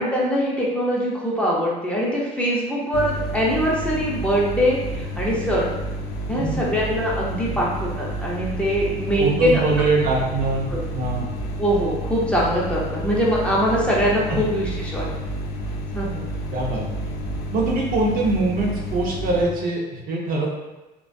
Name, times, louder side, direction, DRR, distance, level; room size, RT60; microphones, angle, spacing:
voice 1, 0.0-5.7 6.3-9.6 10.7-10.8 11.6-15.1 15.9-16.2, equal, 5° left, -6 dB, 0.5 m, -22 dB
sound 1, 2.9-19.4, right 1 dB, 75° left, 0.5 m, -30 dB
voice 2, 9.2-10.7 10.9-11.3 14.3-14.4 16.5-16.8 17.5-20.5, right 3 dB, 55° right, -3 dB, 0.6 m, -23 dB
2.3 x 2.2 x 2.5 m, 1.1 s
cardioid pair, 110°, 17 cm